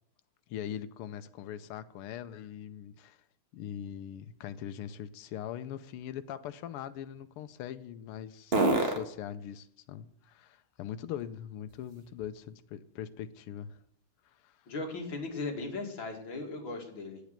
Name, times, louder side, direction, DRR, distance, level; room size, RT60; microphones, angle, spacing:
voice 1, 0.5-3.2 3.5-13.8 14.3-14.6, left 10 dB, 90° left, 1.6 m, -41 dB
sound 1, 3.5-12.6 13.0-16.8, right 2 dB, 30° right, 1.7 m, -39 dB
voice 2, 14.7-17.2, left 3 dB, 60° left, 2.9 m, -37 dB
9.0 x 8.3 x 8.9 m
omnidirectional pair, 2.4 m